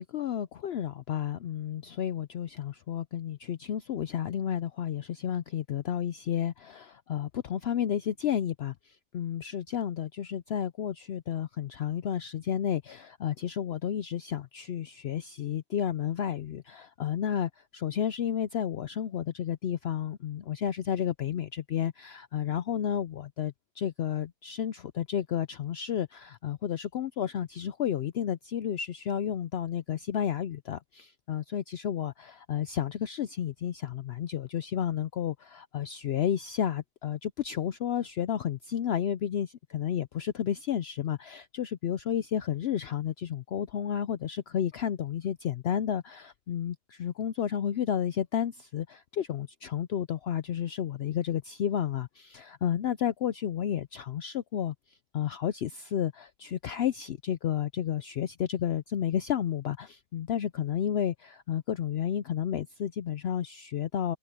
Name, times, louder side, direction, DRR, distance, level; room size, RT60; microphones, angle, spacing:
voice 1, 0.0-54.7 55.1-64.2, left 9 dB, 75° left, 0.5 m, -31 dB
omnidirectional pair, 1.7 m